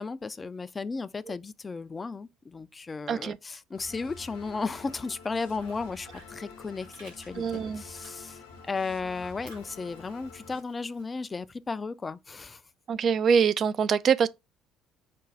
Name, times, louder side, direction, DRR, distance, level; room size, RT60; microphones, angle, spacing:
voice 1, 0.0-12.6, left 4 dB, 25° left, 0.4 m, -35 dB
sound 1, 3.7-10.6, left 4 dB, 80° left, 0.7 m, -48 dB
Fire, 4.9-8.6 8.9-11.7, right 2 dB, 85° right, 1.9 m, -57 dB
voice 2, 7.4-7.8 12.9-14.3, right 6 dB, 45° right, 0.3 m, -24 dB
5.0 x 2.2 x 4.7 m
figure-of-eight pair, 55°, 0 cm